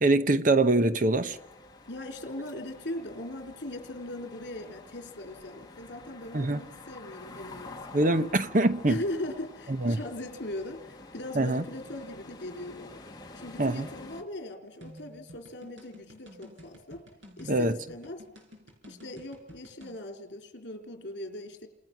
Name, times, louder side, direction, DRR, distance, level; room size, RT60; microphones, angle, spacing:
voice 1, 0.0-1.4 6.3-6.6 7.9-9.0 9.7-10.0 11.4-11.6 13.6-13.9 17.5-17.8, right 2 dB, 45° right, 0.9 m, -24 dB
sound 1, 1.3-14.2, left 2 dB, 20° left, 2.0 m, -48 dB
voice 2, 1.9-8.1 8.9-13.0 13.4-17.0 17.4-18.2 18.9-21.7, left 1 dB, 60° left, 3.7 m, -39 dB
sound 2, 14.8-20.0, equal, 85° right, 6.1 m, -51 dB
30.0 x 27.5 x 6.0 m
head